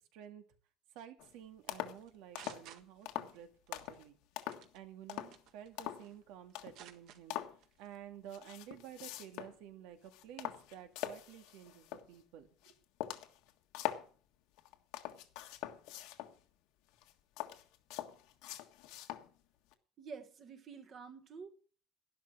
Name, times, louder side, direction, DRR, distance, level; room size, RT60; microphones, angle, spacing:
voice 1, 0.1-0.4 0.9-4.2 4.7-7.4 7.8-12.7, right 10 dB, 90° right, 2.2 m, -52 dB
sound 1, 1.2-1.3 1.7-2.0 2.3-2.7 3.0-3.3 3.7-4.0 4.4-4.7 5.1-5.4 5.8-6.1 6.5-6.8 7.3-7.6 8.3-9.6 9.9-12.1 12.6-12.7 13.0-14.1 14.6-16.4 16.9-19.3 19.7-19.8, left 14 dB, 85° left, 1.6 m, -43 dB
sound 2, 2.0-3.4 3.7-4.0 4.5-4.8 5.3-6.2 6.5-7.2 7.6-7.9, right 10 dB, 60° right, 1.5 m, -55 dB
voice 2, 20.0-21.5, right 5 dB, 35° right, 1.4 m, -49 dB
12.0 x 11.5 x 6.2 m
cardioid pair, 175°, 0 cm